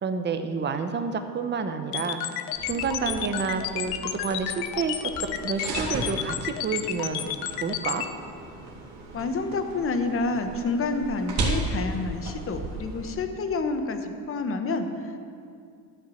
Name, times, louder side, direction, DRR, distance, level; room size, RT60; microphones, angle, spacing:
voice 1, 0.0-8.0, right 5 dB, 25° right, 7 dB, 0.9 m, -29 dB
sound 1, 1.9-8.0, left 12 dB, 75° left, 0.8 m, -31 dB
sound 2, 2.5-13.1, right 2 dB, 45° right, 2.5 m, -35 dB
voice 2, 9.1-15.2, left 3 dB, 35° left, 7 dB, 1.1 m, -28 dB
12.0 x 5.7 x 7.9 m, 2.3 s
cardioid pair, 110°, 39 cm